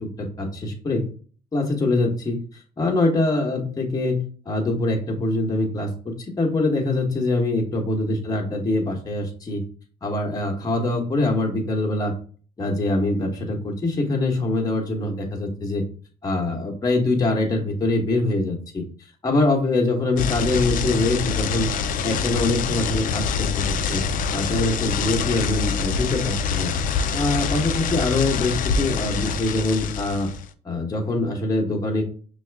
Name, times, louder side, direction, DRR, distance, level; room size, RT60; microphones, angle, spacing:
voice 1, 0.0-1.0 1.5-2.4 2.8-9.6 10.0-12.1 12.6-15.8 16.2-18.8 19.2-21.7 22.0-24.0 24.3-26.7 27.1-30.3 30.6-32.0, left 2 dB, 20° left, 0 dB, 0.9 m, -24 dB
sound 1, 20.2-30.4, left 6 dB, 55° left, 0.4 m, -25 dB
5.5 x 2.4 x 3.3 m, 0.43 s
cardioid pair, 110°, 17 cm